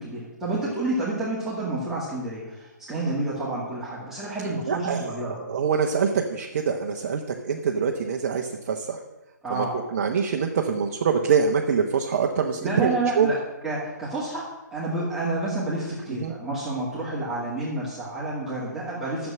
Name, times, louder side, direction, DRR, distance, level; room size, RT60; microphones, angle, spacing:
voice 1, 0.0-5.4 9.4-9.8 12.6-13.4 13.6-14.4 14.7-19.3, right 2 dB, 5° right, -9 dB, 2.2 m, -29 dB
voice 2, 4.7-9.0 9.5-9.7 9.9-13.3 16.2-16.3, right 6 dB, 45° right, 2 dB, 1.0 m, -25 dB
10.5 x 7.2 x 7.6 m, 1.0 s
figure-of-eight pair, 140°, 10 cm